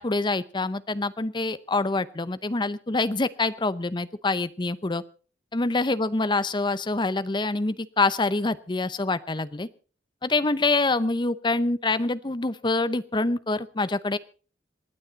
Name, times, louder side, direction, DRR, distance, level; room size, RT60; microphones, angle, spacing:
voice 1, 0.0-5.0 5.5-9.7 10.2-14.2, left 3 dB, 25° left, 15 dB, 0.7 m, -26 dB
27.0 x 9.4 x 4.0 m, 0.38 s
head